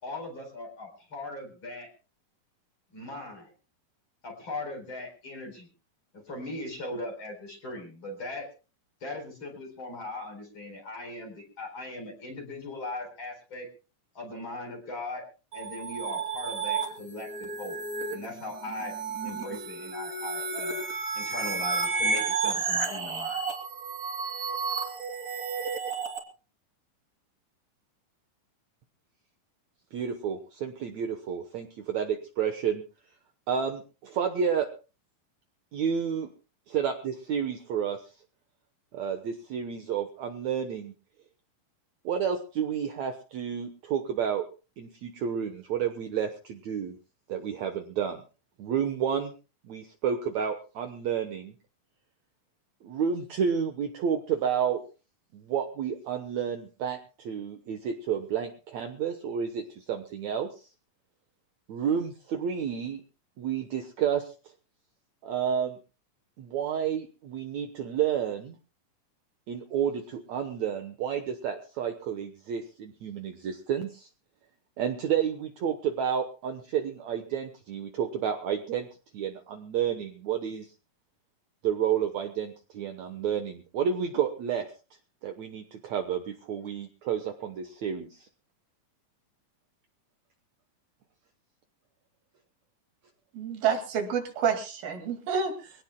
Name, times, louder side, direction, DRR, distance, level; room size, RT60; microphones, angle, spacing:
voice 1, 0.0-1.9 2.9-3.5 4.2-5.7 6.1-8.5 9.0-13.7 14.1-15.2 15.5-17.8 18.1-18.9 19.2-20.9 21.1-23.4, left 2 dB, 35° left, 3 dB, 5.0 m, -39 dB
sound 1, 15.5-26.2, right 4 dB, 25° right, 2.7 m, -32 dB
voice 2, 29.9-32.8 33.5-34.7 35.7-36.3 36.7-38.0 38.9-40.9 42.0-44.5 44.8-47.0 47.3-48.2 48.6-49.3 49.6-51.5 52.8-54.8 55.3-60.7 61.7-63.0 63.4-64.3 65.2-65.8 66.4-68.6 69.5-74.1 74.8-78.9 79.1-80.7 81.6-84.7 85.2-88.3, right 8 dB, 65° right, 5 dB, 2.1 m, -30 dB
voice 3, 93.3-95.7, right 6 dB, 90° right, 4 dB, 4.1 m, -29 dB
24.0 x 17.5 x 2.2 m, 0.33 s
omnidirectional pair, 4.1 m